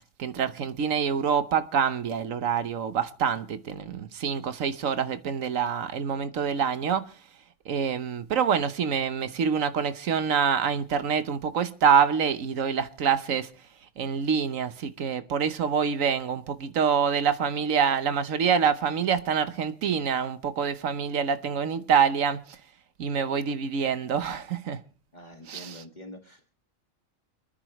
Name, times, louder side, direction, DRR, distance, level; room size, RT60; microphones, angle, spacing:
voice 1, 0.2-7.1 7.7-13.5 14.0-22.6 23.0-24.8 25.5-25.7, right 7 dB, 75° right, 1.3 m, -26 dB
voice 2, 25.1-26.5, equal, 35° left, 1.9 m, -45 dB
29.0 x 10.0 x 3.1 m
omnidirectional pair, 1.4 m